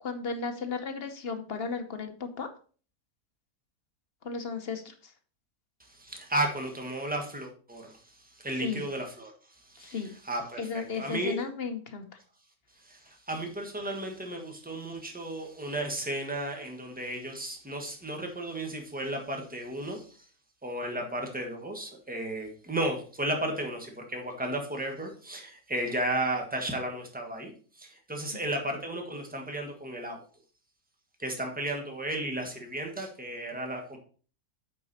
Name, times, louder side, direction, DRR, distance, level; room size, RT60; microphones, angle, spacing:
voice 1, 0.0-2.5 4.2-5.1 8.5-8.8 9.8-10.1 10.6-12.1 28.3-28.4, left 5 dB, 50° left, 7 dB, 0.9 m, -35 dB
voice 2, 5.9-9.3 9.7-10.0 10.2-11.4 12.8-20.2 20.6-27.5 27.8-30.2 31.2-34.0, right 1 dB, 5° right, 3 dB, 1.2 m, -34 dB
8.3 x 4.9 x 4.1 m, 0.41 s
omnidirectional pair, 1.6 m